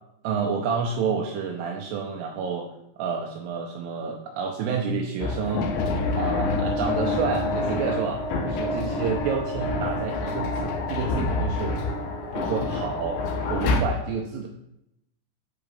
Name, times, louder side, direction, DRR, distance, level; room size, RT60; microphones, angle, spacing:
voice 1, 0.2-5.7 6.2-11.8 12.3-13.2 13.5-14.5, right 5 dB, 85° right, 2 dB, 2.5 m, -29 dB
sound 1, 5.2-13.8, left 2 dB, 80° left, 2.2 m, -27 dB
7.9 x 3.8 x 5.1 m, 0.82 s
omnidirectional pair, 5.0 m